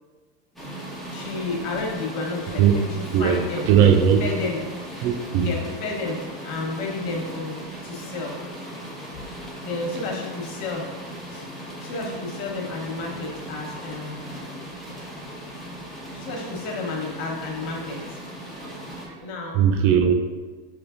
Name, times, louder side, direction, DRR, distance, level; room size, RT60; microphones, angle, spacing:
sound 1, 0.6-19.1, equal, ahead, 1.0 m, -38 dB
voice 1, 1.1-3.7 4.2-4.6 5.4-8.4 9.1-9.3 9.6-11.4 11.8-14.3 16.1-18.2 19.2-19.6, left 3 dB, 60° left, 0 dB, 1.1 m, -31 dB
voice 2, 3.7-4.2 5.0-5.5 18.6-18.7 19.0-19.2 19.5-20.1, right 8 dB, 45° right, 5 dB, 0.5 m, -18 dB
4.9 x 2.9 x 2.5 m, 1.3 s
supercardioid pair, 105°, 30 cm